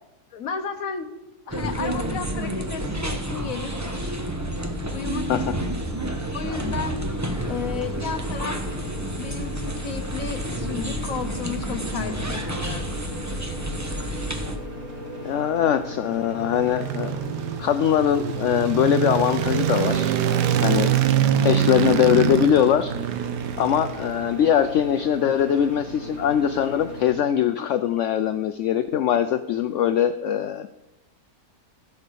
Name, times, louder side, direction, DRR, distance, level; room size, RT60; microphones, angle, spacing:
voice 1, 0.3-1.1 1.5-4.2 4.9-5.4 6.3-7.0 7.5-8.6 9.2-13.0, left 6 dB, 60° left, 8 dB, 1.3 m, -33 dB
sound 1, 1.5-14.6, right 1 dB, 15° right, 0.7 m, -29 dB
sound 2, 7.3-27.1, left 1 dB, 60° right, 2.9 m, -38 dB
voice 2, 15.2-17.3 17.6-20.9 21.4-22.9 23.6-30.7, left 10 dB, 75° left, 11 dB, 0.7 m, -22 dB
sound 3, 16.1-24.5, right 10 dB, 90° right, 1.3 m, -24 dB
15.0 x 5.5 x 6.8 m, 0.99 s
omnidirectional pair, 1.8 m